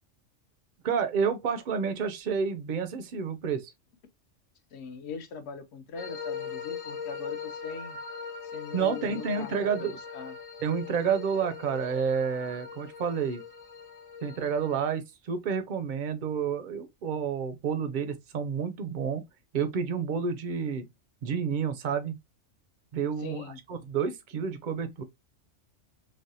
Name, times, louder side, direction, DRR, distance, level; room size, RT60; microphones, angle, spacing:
voice 1, 0.8-3.7 8.7-10.0 10.6-13.4 14.2-19.3 19.5-20.8 21.2-22.2 22.9-25.0, right 6 dB, 60° right, 0.5 m, -30 dB
voice 2, 4.7-8.0 8.4-10.3 23.2-23.6, left 5 dB, 65° left, 0.8 m, -41 dB
sound 1, 6.0-14.9, left 6 dB, 85° left, 1.3 m, -40 dB
3.3 x 2.2 x 2.6 m
omnidirectional pair, 1.3 m